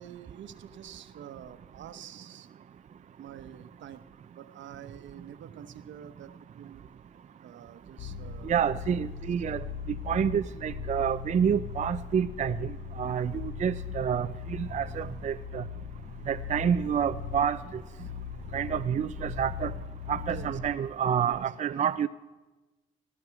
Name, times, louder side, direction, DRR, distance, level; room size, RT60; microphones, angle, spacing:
voice 1, 0.0-2.5 3.2-4.1 4.3-6.8 7.4-8.6 13.1-13.4 18.1-18.2 20.2-20.6 21.2-21.4, right 9 dB, 70° right, 11 dB, 1.0 m, -47 dB
sound 1, 8.0-20.7, left 6 dB, 60° left, 1.4 m, -39 dB
voice 2, 8.4-9.6 10.1-12.7 13.0-15.6 16.3-17.6 18.5-19.7 20.1-22.1, right 8 dB, 35° right, 11 dB, 0.4 m, -28 dB
18.5 x 12.5 x 5.9 m, 1.2 s
cardioid pair, 90°, 20 cm